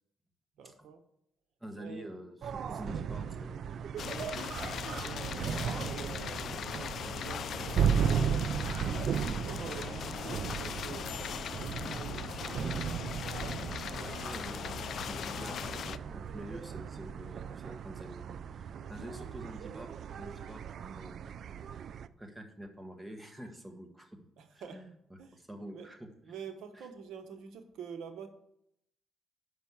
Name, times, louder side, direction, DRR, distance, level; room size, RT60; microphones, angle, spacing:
voice 1, 0.6-1.0 1.8-2.1 2.6-3.2 4.1-8.7 9.4-14.2 18.8-19.1 24.4-24.8 25.2-25.4 25.7-25.9 26.2-28.3, right 6 dB, 80° right, 7 dB, 0.9 m, -48 dB
voice 2, 1.6-3.6 14.2-18.3 18.9-21.2 22.1-24.2 24.5-24.9 25.3-26.1, equal, 10° right, 4 dB, 1.4 m, -47 dB
sound 1, 2.4-22.1, right 7 dB, 65° right, 0.3 m, -36 dB
sound 2, 4.0-16.0, left 8 dB, 65° left, 0.3 m, -39 dB
6.1 x 5.4 x 7.0 m, 0.75 s
cardioid pair, 90°, 0 cm